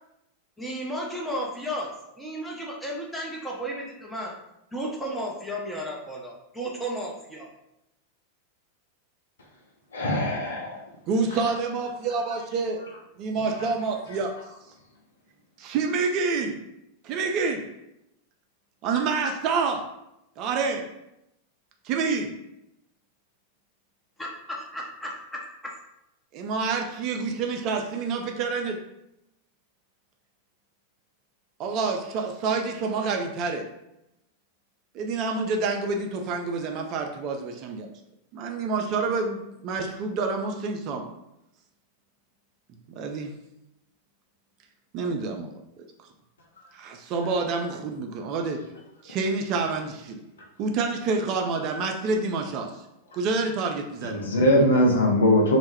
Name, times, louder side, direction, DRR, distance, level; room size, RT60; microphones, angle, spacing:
voice 1, 0.6-1.9 2.2-4.3 4.7-7.5 24.2-25.7, equal, 5° left, -3 dB, 0.6 m, -33 dB
voice 2, 9.9-10.7 54.0-55.6, left 1 dB, 70° left, -1 dB, 0.6 m, -21 dB
voice 3, 11.1-12.8 13.2-14.4 15.6-16.6 17.0-17.7 18.8-19.9 20.4-20.9 21.8-22.4 26.3-28.8 31.6-33.7 34.9-37.9 38.3-41.1 43.0-43.3 44.9-45.5 46.7-48.6 49.0-50.2 50.6-52.7 53.1-54.2, right 4 dB, 40° right, 3 dB, 0.3 m, -28 dB
2.1 x 2.1 x 3.2 m, 0.85 s
figure-of-eight pair, 90°, 0 cm